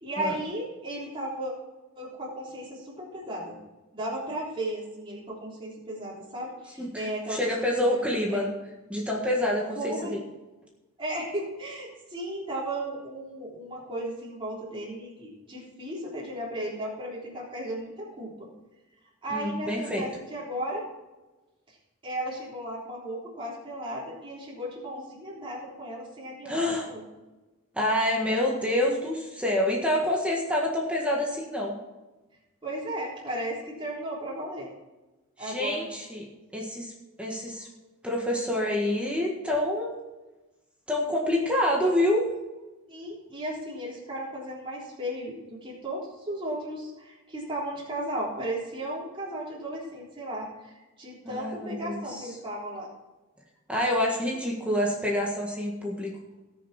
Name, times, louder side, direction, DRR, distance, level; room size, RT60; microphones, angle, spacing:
voice 1, 0.0-1.5 2.0-3.6 3.9-7.5 8.3-8.5 9.8-10.2 11.0-18.5 19.2-20.8 22.0-26.6 26.8-27.0 32.6-34.7 35.4-35.9 41.8-41.9 42.9-50.7 51.0-52.9, right 1 dB, 25° right, -6 dB, 3.6 m, -35 dB
voice 2, 6.8-8.5 8.9-10.2 19.3-20.0 26.4-26.9 27.7-31.7 35.4-36.2 36.5-36.9 37.2-37.7 38.0-40.0 40.9-42.2 51.2-52.3 53.7-56.1, left 1 dB, 5° right, -2 dB, 1.6 m, -27 dB
19.0 x 6.6 x 4.3 m, 1.1 s
head